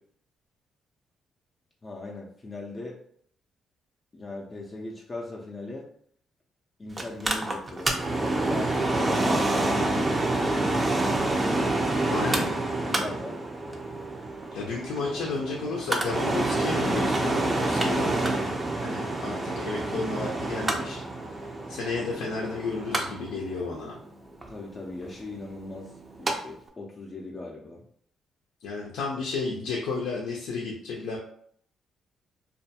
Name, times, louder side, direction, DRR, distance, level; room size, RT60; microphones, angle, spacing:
voice 1, 1.8-3.0 4.1-5.9 6.8-10.5 12.0-12.5 12.8-13.4 24.5-25.9 26.2-27.8, left 2 dB, 30° left, -2 dB, 0.4 m, -38 dB
Mechanical fan, 7.0-26.3 26.7-26.8, right 2 dB, 25° right, 0.4 m, -28 dB
voice 2, 12.1-12.5 14.5-18.5 18.8-21.0 21.7-24.0 28.6-31.2, left 4 dB, 90° left, -2 dB, 0.4 m, -32 dB
2.4 x 2.2 x 2.7 m, 0.63 s
cardioid pair, 90°, 0 cm